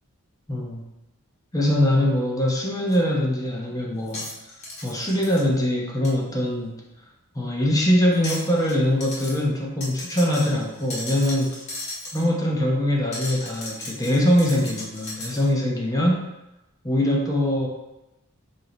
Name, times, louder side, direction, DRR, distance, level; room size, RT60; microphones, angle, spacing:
voice 1, 0.5-0.8 1.5-4.3 4.8-6.8 7.3-11.6 12.1-16.3 16.8-17.7, left 1 dB, 15° left, -2 dB, 0.8 m, -22 dB
sound 1, 2.9-3.0 4.1-5.4 6.0-6.1 8.1-8.8 9.0-9.4 9.8-12.3 13.1-15.5, left 2 dB, 30° left, 1.2 m, -36 dB
4.8 x 2.7 x 3.8 m, 0.96 s
head